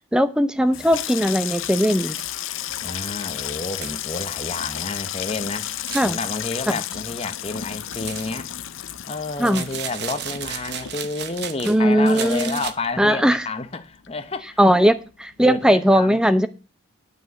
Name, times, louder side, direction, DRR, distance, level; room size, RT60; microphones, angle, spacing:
voice 1, 0.0-2.2 5.9-6.2 9.4-9.6 11.6-12.6 13.0-13.5 14.6-14.9 15.2-16.5, equal, 5° right, 0.6 m, -18 dB
Water tap faucet / Sink (filling or washing), 0.6-13.4 13.7-14.4 14.6-15.0, left 12 dB, 80° left, 0.6 m, -33 dB
sound 1, 1.5-1.6 2.1-2.2 2.6-2.7 3.1-3.2 3.8-4.2 5.7-6.2 7.9-8.5 9.4-11.8 12.0-12.7, right 8 dB, 55° right, 0.9 m, -34 dB
voice 2, 2.8-5.7 6.0-8.5 9.1-15.0 15.4-16.2, left 3 dB, 30° left, 0.9 m, -30 dB
9.6 x 5.6 x 7.9 m
head